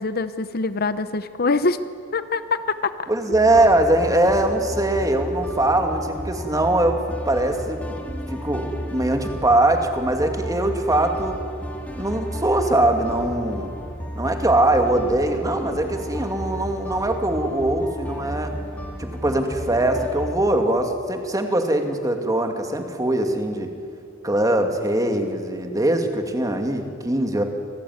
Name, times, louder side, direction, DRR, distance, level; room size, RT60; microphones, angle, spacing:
voice 1, 0.0-1.8 2.1-3.4, left 3 dB, 50° left, 12 dB, 0.9 m, -24 dB
voice 2, 3.1-11.4 12.0-13.7 14.1-18.5 19.0-23.7 24.2-27.4, right 1 dB, 20° right, 5 dB, 2.5 m, -22 dB
sound 1, 3.3-20.3, equal, 10° left, 3.2 m, -33 dB
27.5 x 19.5 x 9.6 m, 2.4 s
head